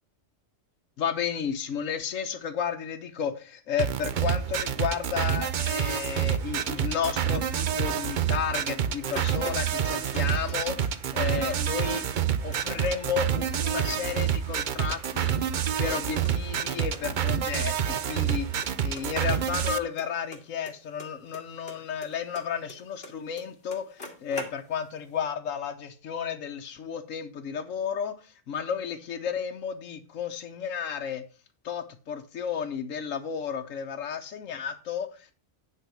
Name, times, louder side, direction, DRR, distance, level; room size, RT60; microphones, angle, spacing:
voice 1, 1.0-12.0 12.4-31.2 31.6-35.3, left 7 dB, 75° left, 4 dB, 1.3 m, -33 dB
sound 1, 3.8-19.8, right 9 dB, 50° right, 0.6 m, -28 dB
sound 2, 8.5-10.2 10.5-11.6 11.8-11.9 12.2-13.6 13.9-14.6 14.9-16.3 16.6-16.7 16.9-17.0 17.3-17.4 17.6-18.0 18.3-18.7 19.0-21.4 21.7-23.1 23.4-23.5 23.7-24.9, left 2 dB, 50° left, 2.2 m, -43 dB
9.7 x 4.5 x 6.2 m, 0.36 s
omnidirectional pair, 1.3 m